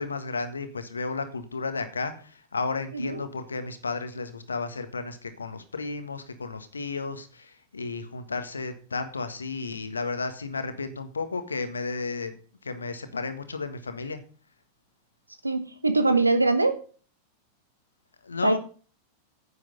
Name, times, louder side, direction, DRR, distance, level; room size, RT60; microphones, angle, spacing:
voice 1, 0.0-12.3 12.6-14.2 18.2-18.6, left 4 dB, 75° left, 1.5 m, -33 dB
voice 2, 15.4-16.8 18.4-18.6, right 2 dB, 80° right, 1.2 m, -23 dB
10.0 x 8.3 x 5.5 m
figure-of-eight pair, 90°, 0 cm